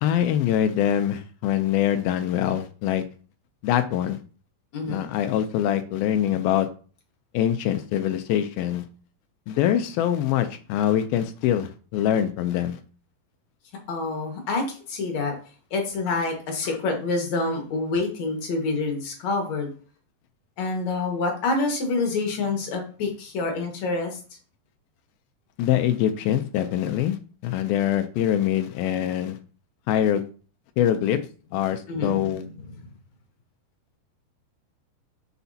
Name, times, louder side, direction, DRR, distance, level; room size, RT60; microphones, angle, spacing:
voice 1, 0.0-3.0 3.6-4.2 4.9-6.7 7.3-8.8 9.5-12.8 16.1-16.2 25.6-27.2 27.4-29.4 29.9-30.2 30.8-31.2 31.5-32.4, left 10 dB, 85° left, 2.5 m, -24 dB
voice 2, 4.7-5.0 13.9-15.3 15.7-19.7 20.6-24.2 31.9-32.9, left 3 dB, 55° left, 2.6 m, -27 dB
8.2 x 6.8 x 2.8 m
omnidirectional pair, 4.2 m